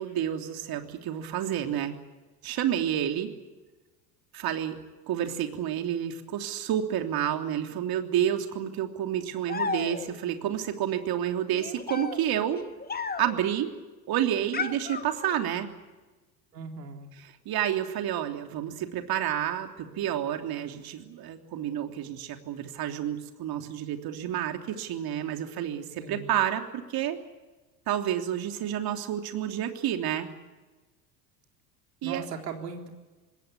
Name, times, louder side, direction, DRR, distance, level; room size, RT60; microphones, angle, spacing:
voice 1, 0.0-2.0 2.4-3.3 4.3-4.8 5.1-12.6 13.2-13.7 14.1-15.7 17.4-27.2 27.9-30.3 32.0-32.2, right 10 dB, 45° right, 5 dB, 3.3 m, -29 dB
sound 1, 9.5-10.3 11.5-13.5 14.5-15.6, left 5 dB, 20° left, 1.8 m, -35 dB
voice 2, 16.5-17.1 26.0-26.3 32.0-32.9, right 5 dB, 80° right, 4 dB, 3.9 m, -38 dB
27.0 x 21.0 x 8.2 m, 1.2 s
hypercardioid pair, 75°, 49 cm